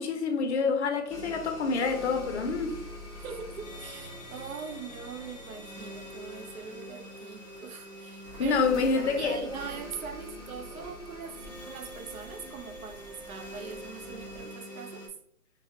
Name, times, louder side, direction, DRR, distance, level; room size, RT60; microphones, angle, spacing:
voice 1, 0.0-2.8 8.4-9.4, left 4 dB, 45° left, 0.5 m, -27 dB
sound 1, 1.1-15.1, left 1 dB, 20° left, 0.8 m, -44 dB
voice 2, 3.2-8.6 9.2-15.1, right 6 dB, 65° right, 0.6 m, -42 dB
sound 2, 8.2-14.5, right 1 dB, 30° right, 0.8 m, -45 dB
3.4 x 2.2 x 2.7 m
hypercardioid pair, 145°, 47 cm